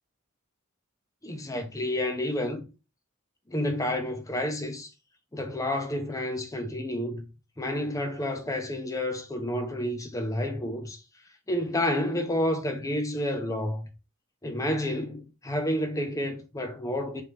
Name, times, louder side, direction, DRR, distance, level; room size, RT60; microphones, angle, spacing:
voice 1, 1.2-2.6 3.5-4.9 5.3-7.3 7.6-11.0 11.5-13.9 14.4-17.2, left 1 dB, 15° left, 0.7 m, -30 dB
3.4 x 2.9 x 4.7 m
head